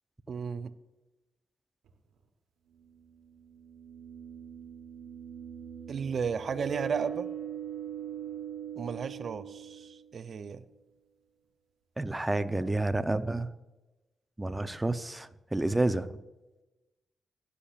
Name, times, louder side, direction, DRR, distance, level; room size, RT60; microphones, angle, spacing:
voice 1, 0.3-0.7 5.9-7.3 8.8-10.7, right 6 dB, 60° right, 12 dB, 0.5 m, -34 dB
sound 1, 1.9-2.0 3.5-10.3, right 9 dB, 85° right, 1.1 m, -41 dB
voice 2, 12.0-13.5 14.4-16.2, right 2 dB, 20° right, 12 dB, 0.6 m, -29 dB
15.5 x 7.1 x 2.5 m, 1.1 s
supercardioid pair, 55°, 0 cm